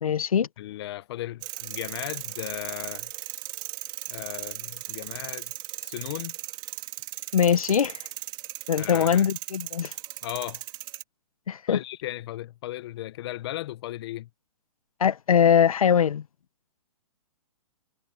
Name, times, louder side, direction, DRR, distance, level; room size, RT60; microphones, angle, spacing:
voice 1, 0.0-0.5 7.3-8.0 8.7-9.9 11.5-11.8 15.0-16.2, left 8 dB, 80° left, 1.4 m, -22 dB
voice 2, 0.6-3.1 4.1-5.5 5.8-6.4 8.7-9.3 10.2-10.6 11.7-14.3, left 15 dB, 45° left, 1.3 m, -36 dB
sound 1, 1.4-11.0, right 17 dB, 25° right, 2.5 m, -37 dB
hypercardioid pair, 140°, 18 cm